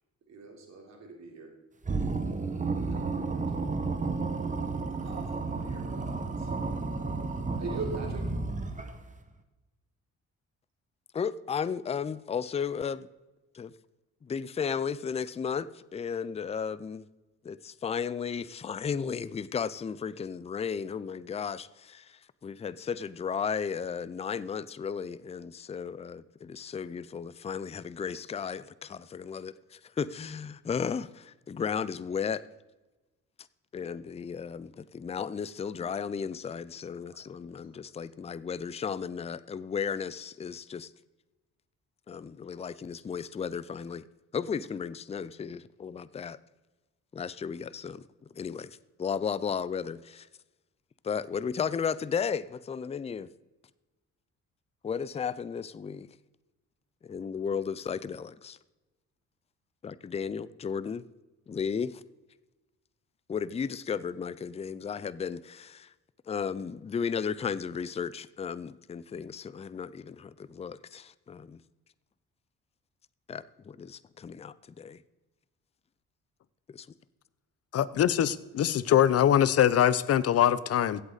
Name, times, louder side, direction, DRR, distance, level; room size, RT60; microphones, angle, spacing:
voice 1, 0.3-1.5 2.7-3.7 4.9-6.5 7.6-8.3 38.0-38.1, right 4 dB, 60° right, 1 dB, 3.4 m, -42 dB
sound 1, 1.8-9.1, right 3 dB, 25° right, 1.3 m, -32 dB
voice 2, 11.1-13.1 13.5-13.7 14.2-17.0 17.4-32.4 33.7-40.9 42.1-44.0 44.3-46.4 47.1-48.0 48.3-50.3 51.0-53.3 54.8-56.1 57.0-58.6 59.8-61.0 61.5-62.0 63.3-65.9 66.3-71.6 73.3-75.0 76.7-76.9, left 6 dB, 20° left, 17 dB, 0.4 m, -34 dB
voice 3, 77.7-81.0, left 10 dB, 55° left, 17 dB, 0.7 m, -23 dB
15.5 x 8.1 x 4.0 m, 1.1 s
cardioid pair, 90°, 30 cm